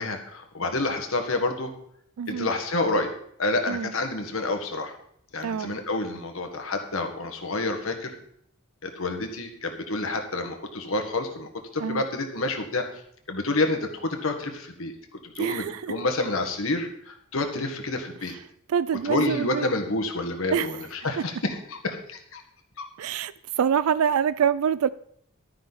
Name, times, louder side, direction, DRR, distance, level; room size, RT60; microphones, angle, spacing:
voice 1, 0.0-1.7 2.3-3.1 3.4-5.0 5.3-8.2 8.8-12.9 13.3-14.9 15.3-18.3 19.0-22.4 22.8-22.9, left 2 dB, 70° left, 1.7 m, -28 dB
voice 2, 2.2-2.5 3.7-3.9 5.4-5.7 11.8-12.0 15.4-15.9 18.7-19.7 20.5-20.8 21.2-21.3 23.0-24.9, right 8 dB, 85° right, 0.4 m, -25 dB
12.0 x 10.0 x 4.1 m
head